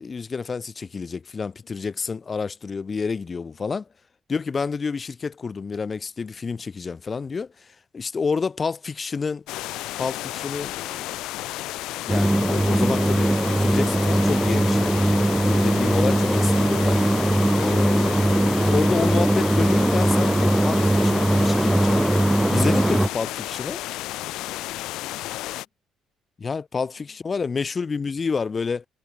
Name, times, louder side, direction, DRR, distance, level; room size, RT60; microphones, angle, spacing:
voice 1, 0.0-3.8 4.3-9.4 10.0-11.1 12.0-15.0 15.4-17.0 17.5-22.2 22.5-23.8 26.4-28.9, left 5 dB, 35° left, 1.0 m, -29 dB
voice 2, 1.4-1.8 3.4-3.8 26.7-27.7, left 8 dB, 55° left, 4.1 m, -58 dB
sound 1, 9.5-25.7, left 17 dB, 85° left, 0.5 m, -32 dB
sound 2, 12.1-23.1, right 1 dB, 5° right, 0.3 m, -20 dB
cardioid pair, 80°, 0 cm